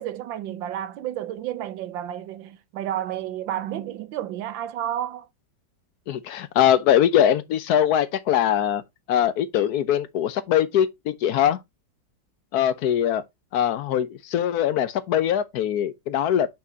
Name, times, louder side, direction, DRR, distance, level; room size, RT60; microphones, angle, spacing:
voice 1, 0.0-5.3, right 11 dB, 85° right, 1.5 m, -31 dB
voice 2, 6.1-8.8 9.1-11.6 12.5-13.2 13.5-16.5, left 10 dB, 65° left, 1.0 m, -22 dB
7.5 x 5.7 x 2.8 m
omnidirectional pair, 2.0 m